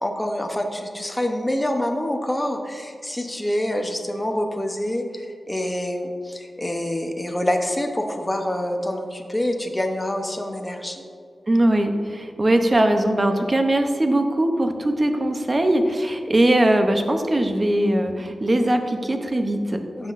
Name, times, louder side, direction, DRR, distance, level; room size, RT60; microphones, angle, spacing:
voice 1, 0.0-11.1 20.0-20.1, left 1 dB, 10° left, 3 dB, 0.7 m, -26 dB
voice 2, 11.5-19.8, right 1 dB, 25° right, 5 dB, 0.7 m, -20 dB
15.0 x 5.9 x 2.5 m, 2.3 s
wide cardioid pair, 155°, 0 cm